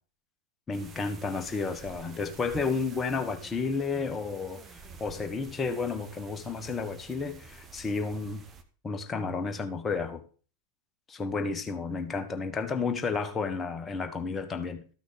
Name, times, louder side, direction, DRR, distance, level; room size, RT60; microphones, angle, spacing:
voice 1, 0.7-4.6 5.0-8.4 8.8-10.2 11.1-14.8, left 4 dB, 20° left, 1.4 m, -31 dB
sound 1, 0.7-8.6, right 4 dB, 20° right, 1.2 m, -49 dB
13.5 x 6.1 x 5.2 m
figure-of-eight pair, 90°, 0 cm